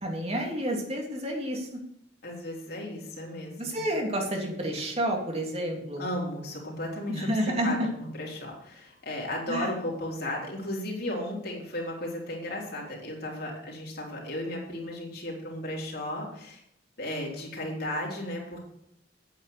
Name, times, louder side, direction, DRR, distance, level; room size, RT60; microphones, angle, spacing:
voice 1, 0.0-1.7 3.6-6.1 7.1-7.9 9.5-9.7, right 1 dB, 35° right, 1 dB, 2.7 m, -30 dB
voice 2, 2.2-3.8 6.0-16.6 17.0-18.6, left 1 dB, 60° left, -2 dB, 3.6 m, -35 dB
9.1 x 8.7 x 6.7 m, 0.75 s
head